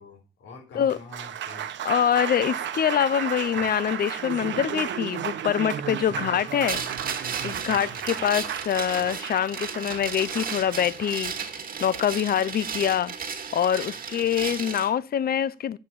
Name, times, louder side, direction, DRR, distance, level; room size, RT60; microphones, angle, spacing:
voice 1, 0.0-1.7 6.1-6.3 7.8-8.6 14.2-14.3, left 3 dB, 75° left, 4.6 m, -47 dB
Applause, 0.7-13.0, right 9 dB, 70° right, 1.2 m, -34 dB
voice 2, 1.8-6.8 7.4-11.3 11.8-13.1 13.5-15.8, left 9 dB, 50° left, 0.7 m, -25 dB
sound 1, 6.7-14.9, right 6 dB, 45° right, 2.3 m, -34 dB
9.2 x 6.9 x 8.6 m
cardioid pair, 90°, 20 cm